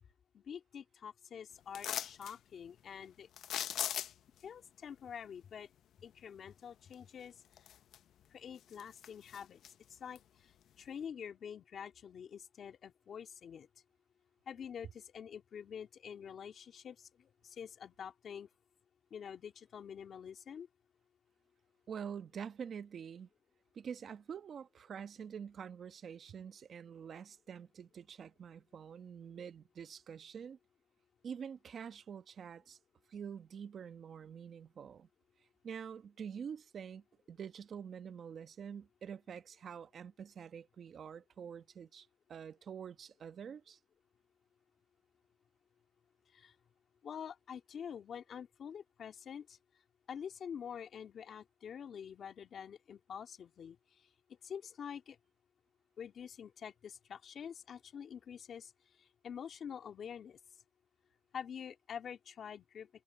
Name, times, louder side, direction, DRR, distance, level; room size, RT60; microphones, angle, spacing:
voice 1, 0.3-3.3 4.4-5.7 6.0-7.4 8.3-9.6 9.9-10.5 10.8-13.7 14.5-18.5 19.1-20.7 46.3-46.5 47.0-49.6 50.1-54.0 54.4-55.2 56.0-58.7 59.0-60.4 61.3-62.9, left 7 dB, 50° left, 2.6 m, -47 dB
sound 1, 1.7-2.4 3.4-4.4 6.9-7.0 7.5-8.2 8.6-9.7 10.2-10.3, left 10 dB, 65° left, 0.8 m, -39 dB
voice 2, 21.9-23.3 23.7-30.6 31.2-32.8 33.1-35.1 35.6-43.8, right 7 dB, 50° right, 1.3 m, -46 dB
cardioid pair, 125°, 0 cm